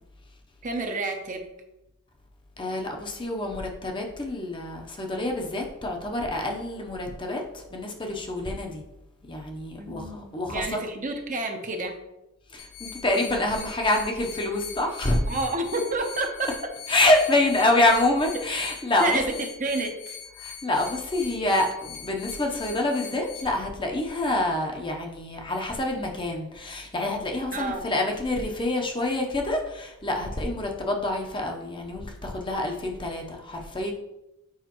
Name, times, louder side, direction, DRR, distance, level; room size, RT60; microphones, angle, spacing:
voice 1, 0.6-1.4 9.8-12.0 15.3-16.5 19.0-20.2 27.5-27.9, right 2 dB, 35° right, 4 dB, 0.7 m, -29 dB
voice 2, 2.6-8.8 9.3-10.8 12.5-15.3 16.9-19.2 20.4-33.9, left 2 dB, 25° left, 1 dB, 0.8 m, -26 dB
sound 1, 12.6-23.4, left 8 dB, 90° left, 2.0 m, -42 dB
7.2 x 4.9 x 3.0 m, 0.91 s
head